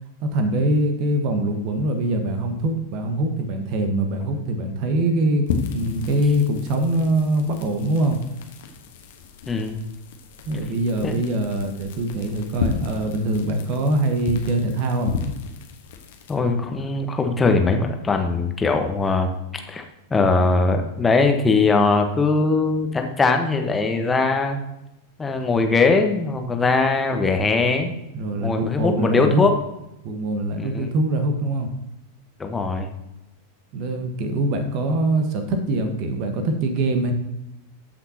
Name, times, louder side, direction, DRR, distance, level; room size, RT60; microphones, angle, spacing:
voice 1, 0.2-8.2 10.4-15.1 28.1-29.4 30.0-31.7 33.7-37.1, right 1 dB, 40° right, 6 dB, 1.3 m, -23 dB
sound 1, 5.5-16.3, left 6 dB, 55° left, 1.3 m, -33 dB
voice 2, 9.5-9.8 11.0-11.2 16.3-19.3 19.7-19.8 20.1-24.6 25.2-28.0 28.4-29.5 30.6-30.9 32.4-32.9, left 3 dB, 15° left, 5 dB, 1.2 m, -20 dB
13.5 x 5.9 x 2.9 m, 0.89 s
figure-of-eight pair, 90°, 0 cm